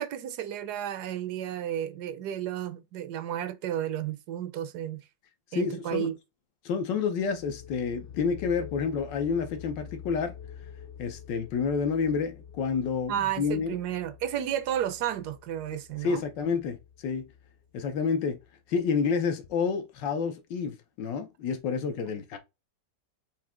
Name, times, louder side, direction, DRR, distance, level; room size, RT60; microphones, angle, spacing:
voice 1, 0.0-5.0 5.5-6.1 13.1-16.2, right 10 dB, 75° right, 1.1 m, -32 dB
voice 2, 5.5-6.1 6.6-10.3 11.0-13.7 15.7-17.3 17.7-18.4 18.7-22.4, left 5 dB, 90° left, 1.6 m, -29 dB
sound 1, 7.2-18.7, left 8 dB, 60° left, 0.8 m, -47 dB
4.8 x 2.8 x 3.6 m
omnidirectional pair, 1.9 m